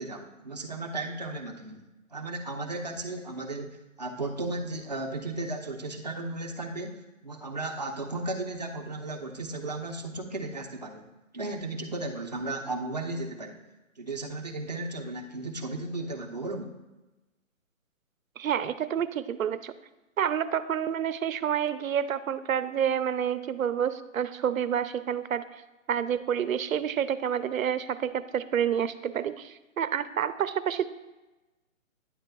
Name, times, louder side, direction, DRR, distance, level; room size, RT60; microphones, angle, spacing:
voice 1, 0.0-1.8 2.1-11.0 11.3-13.6 14.0-16.7, right 2 dB, 35° right, 2 dB, 0.5 m, -35 dB
voice 2, 18.4-19.7 20.2-25.4 25.9-30.9, right 9 dB, 85° right, 13 dB, 0.6 m, -28 dB
9.6 x 7.6 x 2.3 m, 1.1 s
hypercardioid pair, 170°, 40 cm